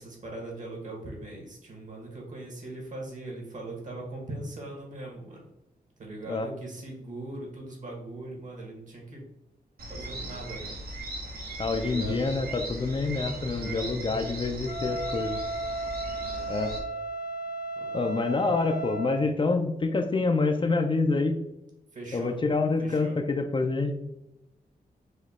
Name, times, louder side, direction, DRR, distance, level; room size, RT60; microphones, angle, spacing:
voice 1, 0.0-5.4 6.0-9.2 9.9-10.7 11.7-12.2 13.5-14.0 16.0-16.5 17.7-18.0 21.9-22.3 22.8-23.1, right 2 dB, 55° right, -1 dB, 1.4 m, -40 dB
sound 1, 9.8-16.8, right 1 dB, 70° right, 1.0 m, -38 dB
voice 2, 11.6-15.4 16.5-16.8 17.9-21.4 22.1-24.0, left 3 dB, 30° left, 5 dB, 0.4 m, -27 dB
Wind instrument woodwind instrument, 14.6-19.3, right 2 dB, 80° left, 1.1 m, -34 dB
4.9 x 2.3 x 4.1 m, 0.90 s
wide cardioid pair, 150°, 16 cm